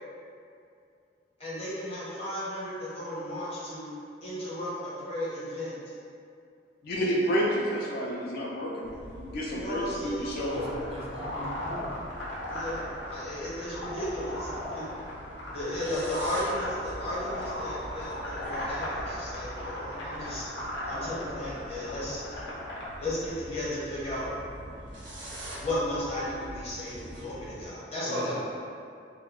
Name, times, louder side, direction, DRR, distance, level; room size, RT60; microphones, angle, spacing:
voice 1, 1.4-3.9 4.2-5.7 9.5-10.2 12.5-14.8 15.5-20.5 20.8-22.2 23.0-24.3 25.6-28.3, left 1 dB, 35° left, -8 dB, 0.8 m, -34 dB
voice 2, 6.8-10.7, equal, 55° left, -4 dB, 0.4 m, -30 dB
sound 1, 8.8-27.7, equal, 75° right, 0.7 m, -45 dB
sound 2, 10.4-22.9, left 1 dB, 90° left, 0.7 m, -37 dB
voice 3, 10.5-11.9 28.0-28.3, right 1 dB, 35° right, -4 dB, 0.4 m, -41 dB
2.2 x 2.1 x 3.5 m, 2.4 s
head